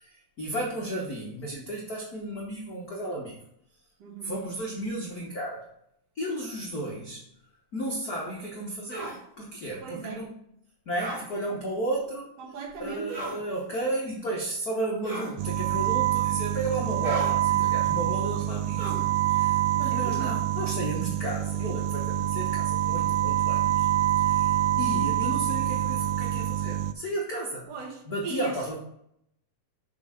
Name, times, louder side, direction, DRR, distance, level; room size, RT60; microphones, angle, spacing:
voice 1, 0.0-3.4 4.2-5.6 6.1-7.2 7.7-10.3 10.9-12.3 12.8-23.9 24.2-27.7 28.1-28.8, right 1 dB, 65° left, -2 dB, 0.9 m, -33 dB
voice 2, 4.0-4.3 9.8-10.2 12.4-13.2 19.9-20.4 27.7-28.8, right 4 dB, 60° right, 1 dB, 2.0 m, -38 dB
sound 1, 8.9-9.2 11.0-11.2 13.1-13.4 15.0-15.4 17.0-17.4 18.8-19.1, right 1 dB, 20° right, 2.0 m, -35 dB
sound 2, 15.4-26.9, right 13 dB, 85° right, 1.4 m, -26 dB
6.9 x 4.9 x 5.5 m, 0.74 s
omnidirectional pair, 3.4 m